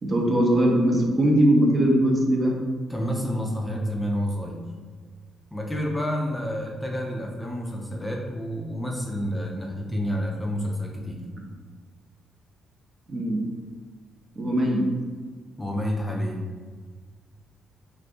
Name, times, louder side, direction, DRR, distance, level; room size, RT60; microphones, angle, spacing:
voice 1, 0.0-2.6 13.1-13.4 14.4-14.8, right 1 dB, 40° right, -1 dB, 0.7 m, -20 dB
voice 2, 2.9-4.6 5.5-11.2 15.6-16.4, equal, 10° left, -1 dB, 0.5 m, -29 dB
2.6 x 2.6 x 3.5 m, 1.5 s
cardioid pair, 90°, 0 cm